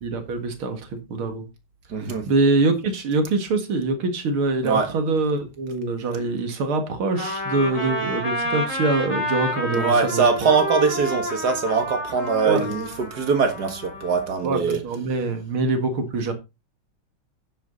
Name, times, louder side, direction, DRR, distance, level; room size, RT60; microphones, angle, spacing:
voice 1, 0.0-1.4 2.3-10.3 12.4-12.7 14.4-16.3, right 3 dB, 75° right, 2.7 m, -24 dB
voice 2, 1.9-2.3 4.6-4.9 9.7-14.8, right 5 dB, 50° right, 2.2 m, -22 dB
Trumpet, 7.2-14.3, left 1 dB, 35° left, 5.2 m, -29 dB
10.5 x 8.2 x 3.9 m
omnidirectional pair, 2.3 m